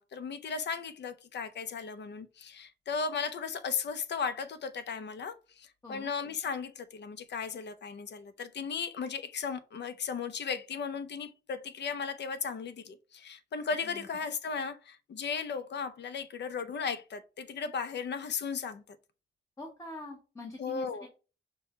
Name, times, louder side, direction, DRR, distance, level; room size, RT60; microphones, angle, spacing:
voice 1, 0.0-18.8 20.6-21.1, left 5 dB, 60° left, 0.6 m, -36 dB
voice 2, 19.6-21.1, left 2 dB, 15° left, 0.9 m, -44 dB
5.4 x 2.2 x 4.1 m
wide cardioid pair, 140°, 20 cm